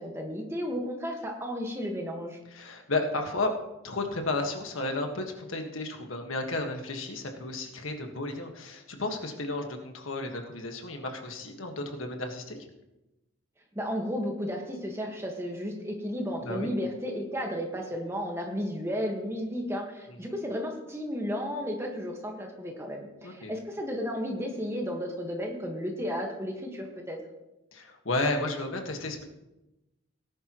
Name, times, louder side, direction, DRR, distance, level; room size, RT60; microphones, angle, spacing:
voice 1, 0.0-2.4 13.7-27.2, equal, 15° right, 1 dB, 1.5 m, -33 dB
voice 2, 2.5-3.5 3.8-12.7 16.4-16.7 20.1-20.2 23.2-23.5 27.7-29.2, left 2 dB, 80° left, 4 dB, 1.6 m, -33 dB
17.5 x 11.0 x 3.1 m, 0.98 s
head